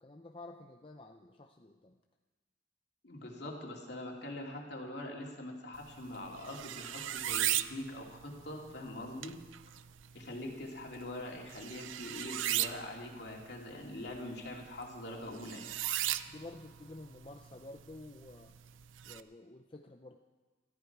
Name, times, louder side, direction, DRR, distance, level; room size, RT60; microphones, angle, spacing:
voice 1, 0.0-2.0 16.3-18.5 19.0-20.2, left 2 dB, 30° left, 3 dB, 0.6 m, -50 dB
voice 2, 3.0-9.3 10.1-15.7, left 1 dB, 60° left, 0 dB, 2.7 m, -43 dB
sound 1, 5.7-19.2, right 12 dB, 90° right, 0.5 m, -39 dB
21.5 x 14.0 x 4.7 m, 1.3 s
head